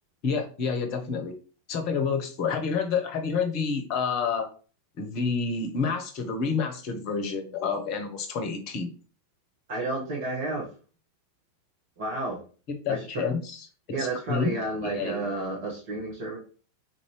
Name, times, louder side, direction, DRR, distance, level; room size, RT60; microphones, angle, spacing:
voice 1, 0.2-1.3 1.7-4.5 5.0-8.9 12.7-13.7 14.0-14.6 14.8-15.3, left 5 dB, 40° left, 6 dB, 0.8 m, -29 dB
voice 2, 9.7-10.6 12.0-12.4 12.9-13.2 13.9-16.4, right 2 dB, 55° right, -4 dB, 1.1 m, -31 dB
3.9 x 2.6 x 3.2 m, 0.38 s
figure-of-eight pair, 90°, 0 cm